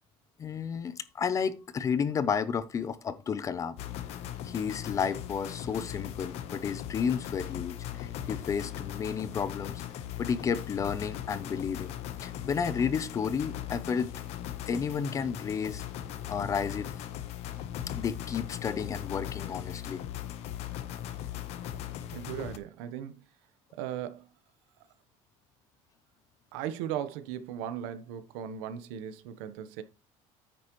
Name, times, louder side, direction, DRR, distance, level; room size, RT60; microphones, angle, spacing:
voice 1, 0.4-3.8 4.4-9.8 10.2-11.9 12.2-14.1 14.7-15.8 16.3-17.0 17.9-20.0, left 6 dB, 25° left, 0.6 m, -32 dB
sound 1, 3.8-22.6, left 11 dB, 50° left, 1.1 m, -39 dB
voice 2, 22.1-23.2 23.7-24.3 26.5-29.8, right 10 dB, 90° right, 1.1 m, -37 dB
9.8 x 8.0 x 3.1 m
cardioid pair, 160°, 13 cm